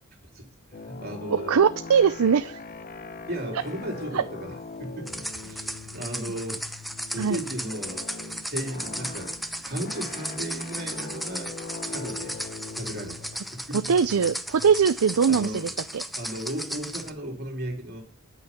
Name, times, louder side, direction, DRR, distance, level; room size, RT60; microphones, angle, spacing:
sound 1, 0.7-17.2, left 4 dB, 40° left, 0.9 m, -42 dB
voice 1, 0.7-1.6 3.3-4.5 4.8-6.6 7.1-11.5 11.9-12.4 12.7-13.8 15.3-15.8 16.1-18.0, right 1 dB, 45° right, 3.5 m, -35 dB
voice 2, 1.3-2.6 4.1-4.2 7.2-7.4 13.9-16.0, right 6 dB, 80° right, 0.5 m, -21 dB
sound 2, 5.1-17.1, equal, ahead, 0.8 m, -36 dB
9.9 x 8.5 x 5.9 m
head